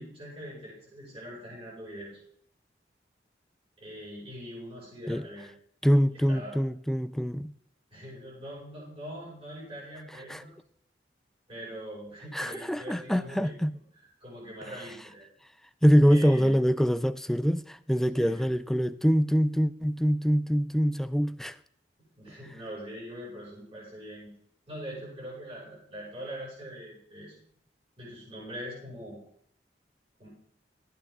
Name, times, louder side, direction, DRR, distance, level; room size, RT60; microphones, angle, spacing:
voice 1, 0.0-2.2 3.8-5.5 6.3-6.6 7.9-10.5 11.5-13.6 14.2-15.2 16.1-16.5 18.2-18.5 22.0-24.3 24.7-27.3 28.0-29.2 30.2-30.3, equal, 30° right, 5.8 m, -42 dB
voice 2, 5.8-7.5 10.3-10.4 12.3-13.8 15.8-21.6, equal, ahead, 0.3 m, -24 dB
13.0 x 9.2 x 3.7 m
head